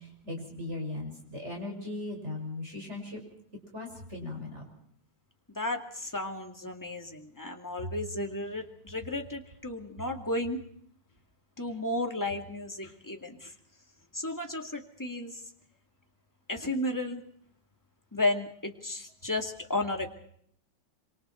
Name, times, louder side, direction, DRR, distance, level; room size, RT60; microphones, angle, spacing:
voice 1, 0.2-3.2 3.7-4.6, left 2 dB, 35° right, 1 dB, 6.2 m, -38 dB
voice 2, 5.6-10.6 11.6-13.5 14.1-15.3 16.5-17.2 18.1-20.1, left 2 dB, 10° left, 3 dB, 2.1 m, -33 dB
26.5 x 25.0 x 4.5 m, 0.65 s
omnidirectional pair, 2.0 m